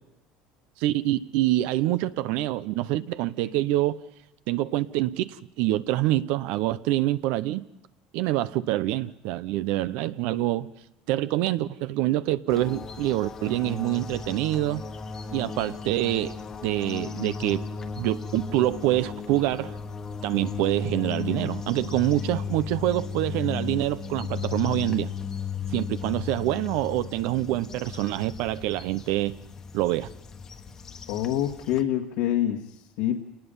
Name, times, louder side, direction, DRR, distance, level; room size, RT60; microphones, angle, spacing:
voice 1, 0.8-4.0 4.5-7.6 8.1-10.7 11.1-14.8 15.3-17.6 18.0-19.7 20.2-25.1 25.7-29.4 29.7-30.1, right 15 dB, 65° right, 0.8 m, -26 dB
sound 1, 12.5-31.8, left 5 dB, 25° left, 1.3 m, -36 dB
voice 2, 31.1-33.2, left 11 dB, 80° left, 2.0 m, -26 dB
27.5 x 19.5 x 5.5 m
cardioid pair, 155°, 2 cm